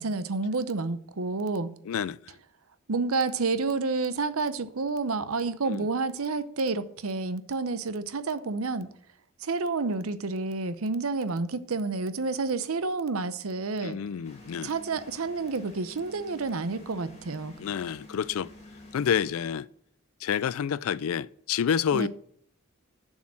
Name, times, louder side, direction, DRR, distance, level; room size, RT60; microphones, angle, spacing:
voice 1, 0.0-1.7 2.9-8.9 9.4-14.0 14.6-17.5 21.9-22.1, right 3 dB, 85° right, 0.7 m, -29 dB
voice 2, 1.8-2.4 5.7-5.9 13.8-14.7 17.6-18.5 18.9-19.7 20.2-22.1, left 8 dB, 85° left, 0.4 m, -29 dB
sound 1, 14.2-19.3, left 2 dB, 30° left, 2.0 m, -49 dB
7.1 x 6.4 x 7.5 m
head